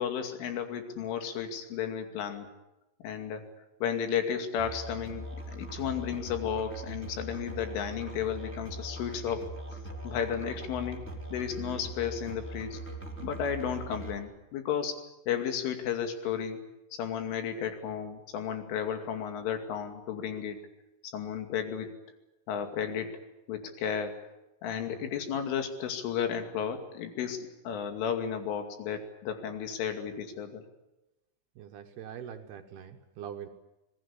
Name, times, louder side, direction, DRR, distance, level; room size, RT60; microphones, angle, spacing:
voice 1, 0.0-2.5 3.0-3.4 3.8-5.3 5.5-9.5 10.0-11.0 11.3-12.8 13.2-15.0 15.3-16.6 16.9-20.6 21.1-21.9 22.5-23.2 23.5-24.2 24.6-30.6, left 8 dB, 70° left, 6 dB, 4.8 m, -33 dB
Musical instrument, 4.6-14.2, right 2 dB, 5° left, 2.7 m, -41 dB
voice 2, 31.6-33.5, right 9 dB, 70° right, 6 dB, 2.5 m, -44 dB
25.0 x 19.0 x 9.8 m, 0.98 s
omnidirectional pair, 6.0 m